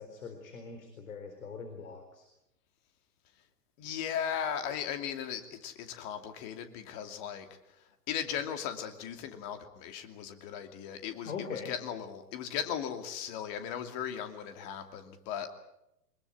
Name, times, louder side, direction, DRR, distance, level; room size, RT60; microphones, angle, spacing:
voice 1, 0.0-2.3 11.2-11.7, left 5 dB, 55° left, 6 dB, 4.2 m, -42 dB
voice 2, 3.8-7.5 8.1-15.5, left 8 dB, 30° left, 7 dB, 2.6 m, -37 dB
24.0 x 21.0 x 8.4 m, 0.85 s
figure-of-eight pair, 115°, 48 cm